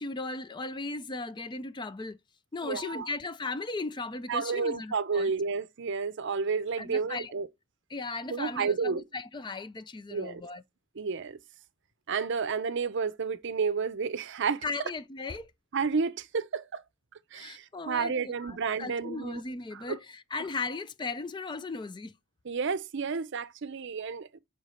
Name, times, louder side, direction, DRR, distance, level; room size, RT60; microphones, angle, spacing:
voice 1, 0.0-2.2 2.5-5.3 6.8-7.3 7.9-10.6 14.6-15.5 17.3-22.1, left 3 dB, 20° left, 0.4 m, -37 dB
voice 2, 2.6-3.1 4.3-7.5 8.3-9.0 10.1-10.4 11.0-11.4 12.1-14.6 15.7-16.8 17.3-19.4 19.7-20.0 22.4-24.4, right 5 dB, 60° right, 0.6 m, -31 dB
8.1 x 3.7 x 5.5 m
head